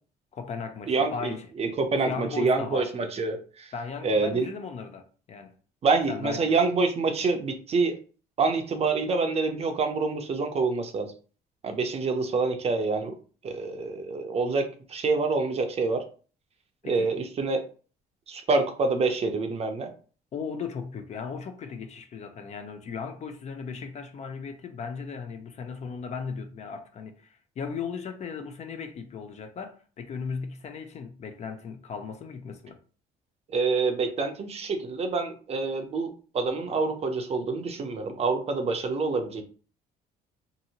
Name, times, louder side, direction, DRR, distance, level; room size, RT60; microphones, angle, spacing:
voice 1, 0.3-1.5 2.0-2.9 3.7-5.5 6.1-6.5 16.8-17.1 20.3-32.8, left 5 dB, 40° left, 0.5 m, -37 dB
voice 2, 0.9-3.7 4.0-4.5 5.8-8.0 8.4-11.1 11.6-13.2 13.4-16.0 16.8-17.6 18.3-19.9 33.5-39.4, right 4 dB, 40° right, 0.6 m, -27 dB
2.7 x 2.5 x 2.8 m
cardioid pair, 110°, 17 cm